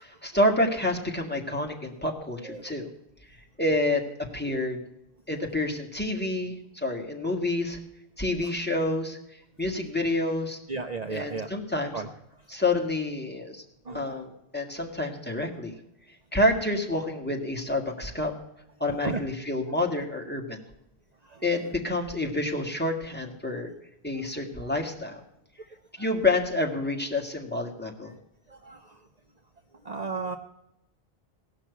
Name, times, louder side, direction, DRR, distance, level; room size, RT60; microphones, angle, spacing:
voice 1, 0.0-2.9 3.6-4.0 4.3-4.8 5.3-7.8 8.2-9.2 9.6-10.6 11.1-12.0 12.5-13.6 13.9-15.7 16.3-18.3 18.8-20.6 21.4-23.7 24.0-25.2 26.0-28.1, left 2 dB, 10° left, 0 dB, 1.8 m, -28 dB
voice 2, 10.7-11.5 11.9-12.1 12.5-12.6 13.8-14.1 19.0-19.2 21.2-21.4 26.0-26.1 28.5-29.0 29.8-30.4, right 4 dB, 45° right, 6 dB, 0.8 m, -34 dB
17.5 x 6.0 x 8.2 m, 0.83 s
omnidirectional pair, 1.0 m